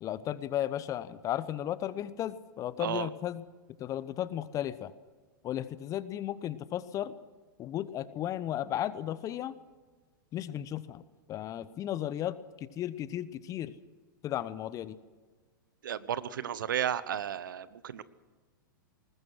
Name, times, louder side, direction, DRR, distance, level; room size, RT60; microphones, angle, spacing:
voice 1, 0.0-3.4 3.8-4.9 5.4-7.1 7.6-9.5 10.3-11.0 11.3-12.4 12.8-13.7 14.2-15.0, left 12 dB, 30° left, 16 dB, 0.9 m, -34 dB
voice 2, 15.8-18.0, right 9 dB, 70° right, 16 dB, 1.1 m, -33 dB
20.5 x 20.0 x 6.4 m, 1.4 s
hypercardioid pair, 105°, 11 cm